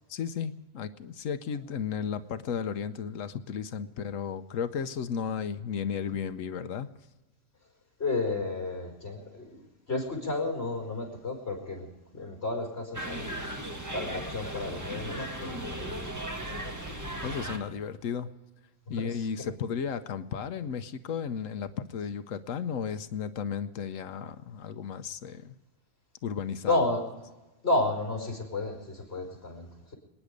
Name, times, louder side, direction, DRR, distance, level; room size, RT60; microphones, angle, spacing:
voice 1, 0.1-6.9 17.2-18.3 18.9-25.6 26.2-26.9, left 7 dB, 80° left, 11 dB, 1.2 m, -34 dB
voice 2, 8.0-11.9 12.1-16.1 16.5-16.9 18.9-19.5 26.6-27.1 27.6-30.0, left 2 dB, 50° left, 2 dB, 5.1 m, -32 dB
sound 1, 12.9-17.6, right 1 dB, 15° right, 1.6 m, -37 dB
27.0 x 10.0 x 5.1 m, 1.1 s
omnidirectional pair, 1.3 m